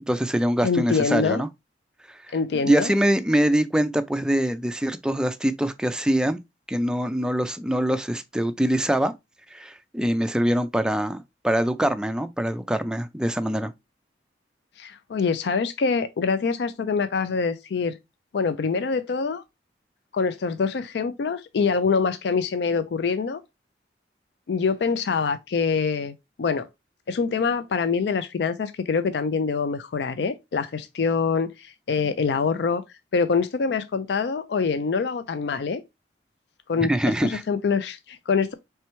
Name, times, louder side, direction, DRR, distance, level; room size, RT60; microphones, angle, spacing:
voice 1, 0.1-1.5 2.3-2.4 2.6-6.4 6.7-9.1 9.5-13.7 36.8-37.4, equal, 5° right, 0.3 m, -24 dB
voice 2, 0.6-1.4 2.3-2.9 14.8-18.0 18.3-19.4 20.1-23.4 24.5-26.7 27.1-32.8 33.1-35.8 36.7-36.9 37.2-38.5, left 5 dB, 65° left, 0.4 m, -25 dB
4.4 x 3.3 x 3.0 m
head